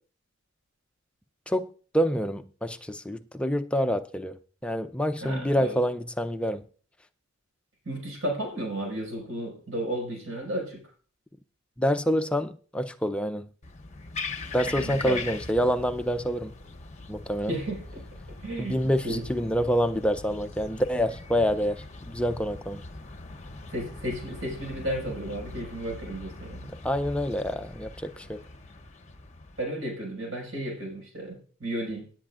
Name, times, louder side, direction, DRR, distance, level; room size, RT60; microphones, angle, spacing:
voice 1, 1.9-4.4 4.6-6.6 11.8-13.5 14.5-16.5 17.1-17.5 18.6-22.8 26.8-28.4, equal, 5° left, 0.5 m, -27 dB
voice 2, 5.2-5.8 7.9-10.8 14.7-15.2 17.5-18.0 18.4-18.8 19.0-19.2 23.7-26.7 29.6-32.1, right 1 dB, 85° right, 5.6 m, -33 dB
sound 1, 13.6-29.6, left 3 dB, 35° left, 0.9 m, -41 dB
18.0 x 8.9 x 2.5 m
head